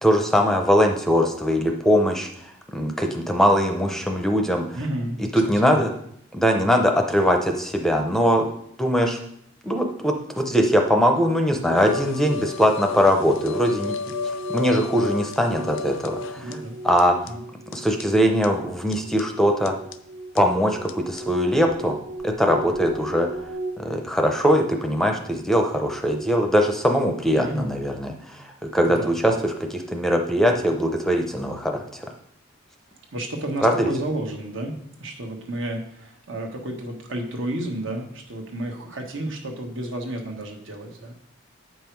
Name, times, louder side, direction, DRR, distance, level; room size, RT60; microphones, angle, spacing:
voice 1, 0.0-4.8 5.3-5.9 6.3-8.5 8.8-9.2 9.6-13.9 14.5-16.6 16.8-17.2 17.7-19.7 20.3-22.0 22.2-23.3 23.8-28.5 28.7-29.3 29.7-32.1 33.6-33.9, equal, ahead, 3 dB, 0.6 m, -21 dB
voice 2, 4.7-5.8 16.4-16.7 17.3-17.4 27.4-27.7 28.9-29.5 33.1-34.7 35.0-41.2, right 1 dB, 75° right, 2 dB, 1.4 m, -31 dB
sound 1, 11.1-23.7, right 2 dB, 45° right, 1.1 m, -37 dB
sound 2, 11.8-16.5 17.0-17.1 17.3-17.4 17.7-17.8 18.0-18.1 18.4-18.5 18.9-19.2 19.7-19.9 20.4-20.5 20.9-21.0 21.2-21.3, left 5 dB, 75° left, 0.5 m, -32 dB
8.1 x 5.4 x 4.6 m, 0.71 s
head